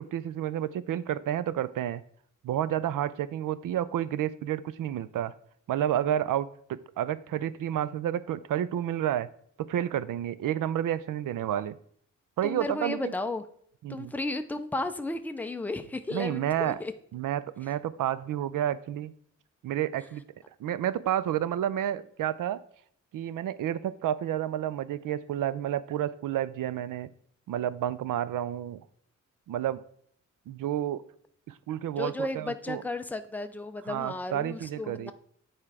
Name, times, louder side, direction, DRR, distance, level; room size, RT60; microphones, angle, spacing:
voice 1, 0.0-2.0 2.4-5.3 5.7-6.5 7.0-9.3 9.6-11.8 12.4-13.1 13.8-14.1 16.1-16.8 17.1-19.1 19.6-20.2 20.6-22.6 23.1-27.1 27.5-28.8 29.5-29.8 30.5-31.0 31.5-32.8 33.9-35.1, right 11 dB, 85° right, 16 dB, 0.5 m, -30 dB
voice 2, 12.4-13.5 13.9-16.9 32.0-35.1, left 2 dB, 5° left, 8 dB, 0.3 m, -34 dB
8.8 x 4.4 x 4.8 m, 0.64 s
wide cardioid pair, 175°, 32 cm